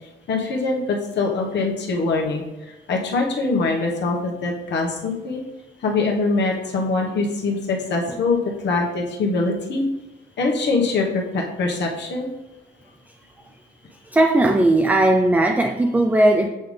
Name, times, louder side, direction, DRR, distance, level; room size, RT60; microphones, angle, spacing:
voice 1, 0.3-2.4 2.9-5.4 5.8-9.8 10.4-12.3, left 3 dB, 60° left, 0 dB, 1.3 m, -23 dB
voice 2, 14.1-16.5, right 1 dB, 10° right, 4 dB, 0.5 m, -17 dB
7.8 x 3.8 x 3.3 m, 1.1 s
cardioid pair, 90°, 20 cm